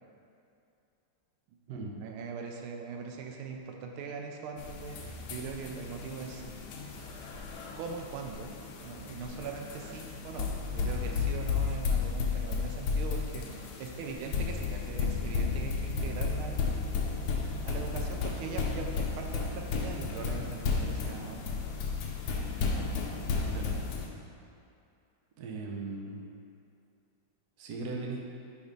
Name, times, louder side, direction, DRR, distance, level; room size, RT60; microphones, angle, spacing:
voice 1, 2.0-6.5 7.0-7.3 7.8-8.5 8.8-16.9 17.6-21.6, right 5 dB, 80° right, 2 dB, 1.4 m, -41 dB
sound 1, 4.6-24.1, left 4 dB, 75° left, 1.4 m, -33 dB
voice 2, 25.4-26.2 27.6-28.2, right 3 dB, 65° right, -1 dB, 1.0 m, -38 dB
5.2 x 4.0 x 5.1 m, 2.6 s
omnidirectional pair, 2.3 m